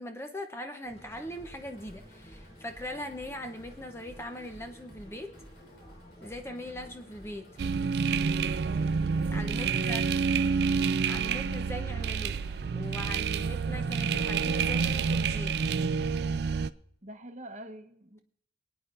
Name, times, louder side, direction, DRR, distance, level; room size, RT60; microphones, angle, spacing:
voice 1, 0.0-5.4 6.2-7.5 9.3-10.1 11.1-12.4 12.7-15.6, left 1 dB, 15° left, 6 dB, 0.7 m, -40 dB
sound 1, 0.8-15.2, equal, 35° left, 2.4 m, -56 dB
sound 2, 1.1-12.7, equal, 60° left, 3.6 m, -53 dB
sound 3, 7.6-16.7, right 5 dB, 60° right, 0.4 m, -28 dB
voice 2, 8.6-9.0 9.5-10.0 17.0-18.2, right 1 dB, 40° right, 7 dB, 1.0 m, -46 dB
25.5 x 9.2 x 2.5 m, 0.68 s
head